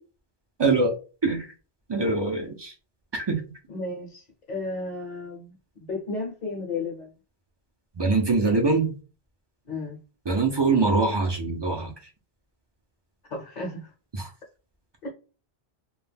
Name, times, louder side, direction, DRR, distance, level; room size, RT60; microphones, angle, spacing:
voice 1, 0.6-0.9 1.2-1.5 1.9-2.7 3.1-3.4 8.0-9.0 10.3-11.9 14.1-14.3, right 3 dB, 40° right, 0.4 m, -23 dB
voice 2, 3.7-7.1 9.7-10.0 13.3-13.9 15.0-15.1, left 3 dB, 50° left, 0.7 m, -33 dB
2.3 x 2.1 x 3.2 m
omnidirectional pair, 1.1 m